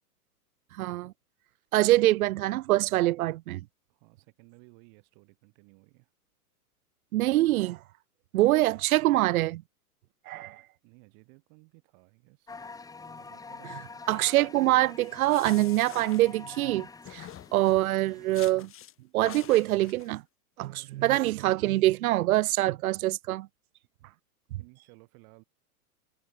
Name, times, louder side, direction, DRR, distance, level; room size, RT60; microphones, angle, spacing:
voice 1, 0.8-1.1 1.7-3.6 7.1-7.8 8.3-9.6 10.3-10.6 14.1-18.7 19.1-20.2 20.6-23.5, right 16 dB, 65° right, 0.6 m, -24 dB
voice 2, 3.9-6.1 10.8-12.6 13.0-14.0 24.5-25.4, right 40 dB or more, 45° right, 6.1 m, -57 dB
sound 1, 12.5-18.5, left 4 dB, 10° left, 1.1 m, -46 dB
sound 2, 15.0-16.7 17.1-17.9 18.3-18.9 19.3-20.1, left 12 dB, 30° left, 3.9 m, -46 dB
hypercardioid pair, 115°, 46 cm